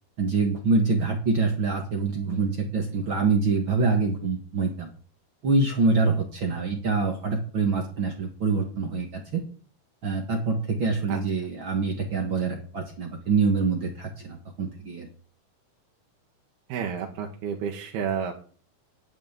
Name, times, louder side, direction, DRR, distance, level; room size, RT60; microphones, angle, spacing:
voice 1, 0.2-4.9 5.4-9.4 10.0-15.1, right 4 dB, 45° right, 3 dB, 1.6 m, -25 dB
voice 2, 16.7-18.5, right 7 dB, 80° right, 1 dB, 3.3 m, -31 dB
11.0 x 6.3 x 9.0 m, 0.42 s
omnidirectional pair, 4.4 m